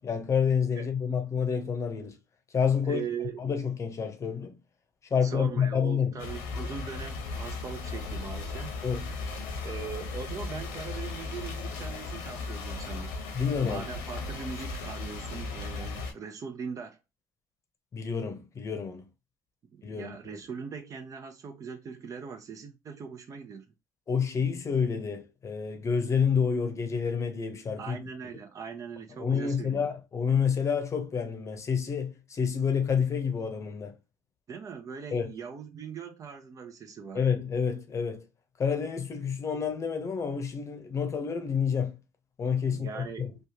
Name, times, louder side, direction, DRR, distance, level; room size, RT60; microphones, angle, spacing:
voice 1, 0.0-2.2 2.5-3.1 3.4-4.5 5.1-6.1 8.8-9.0 13.3-13.8 17.9-19.0 19.8-20.4 24.1-28.0 29.2-33.9 35.1-35.3 37.1-38.2 38.6-41.9 42.4-43.3, left 6 dB, 35° left, 0.8 m, -28 dB
voice 2, 2.8-3.4 5.2-8.8 9.6-13.1 13.6-17.0 19.7-23.7 27.8-29.9 34.5-37.3 42.6-43.4, right 6 dB, 40° right, 0.7 m, -40 dB
sound 1, 6.2-16.1, left 3 dB, 80° left, 1.0 m, -36 dB
3.2 x 2.3 x 2.8 m
hypercardioid pair, 70°, 8 cm